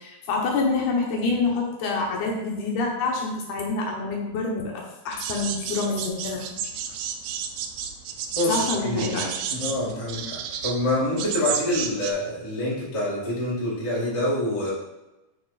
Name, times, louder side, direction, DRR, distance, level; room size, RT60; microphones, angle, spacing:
voice 1, 0.0-6.5 8.5-9.3, left 3 dB, 70° left, -1 dB, 2.4 m, -27 dB
sound 1, 5.1-12.1, right 8 dB, 85° right, 1.7 m, -32 dB
voice 2, 8.8-9.1 9.5-14.7, left 1 dB, 20° left, -6 dB, 0.9 m, -26 dB
8.5 x 3.6 x 4.1 m, 1.0 s
omnidirectional pair, 3.8 m